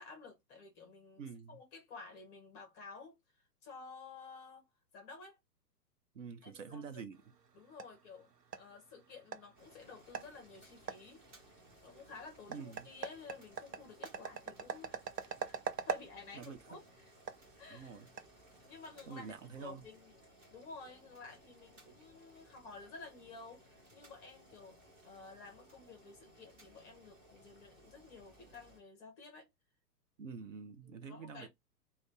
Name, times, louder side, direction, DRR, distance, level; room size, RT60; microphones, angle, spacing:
voice 1, 0.0-4.7 4.9-5.4 6.4-6.8 7.5-8.3 8.6-11.2 11.8-17.1 17.6-18.0 18.6-20.1 20.5-24.8 25.0-29.5 30.8-31.5, left 4 dB, 15° left, 0.7 m, -53 dB
voice 2, 1.2-1.6 6.1-7.2 12.5-12.9 16.3-16.8 17.7-18.1 19.1-19.9 30.2-31.5, right 6 dB, 55° right, 0.7 m, -47 dB
sound 1, 7.1-19.0, right 7 dB, 85° right, 0.6 m, -45 dB
Boiling, 9.6-28.8, right 1 dB, 15° right, 0.9 m, -62 dB
2.4 x 2.2 x 3.6 m
figure-of-eight pair, 115°, 47 cm